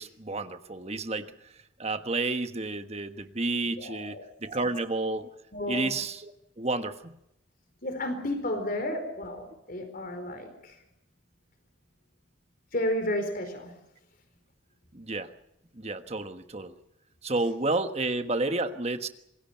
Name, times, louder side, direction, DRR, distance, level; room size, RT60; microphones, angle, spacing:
voice 1, 0.0-1.3 1.8-5.3 5.7-7.1 14.9-15.3 15.7-16.7 17.2-19.1, right 2 dB, 35° right, 9 dB, 1.4 m, -31 dB
voice 2, 3.8-4.2 4.6-4.7 5.5-5.9 7.8-10.7 12.7-13.7, left 1 dB, 50° left, 7 dB, 4.3 m, -32 dB
26.5 x 22.0 x 5.8 m, 0.81 s
head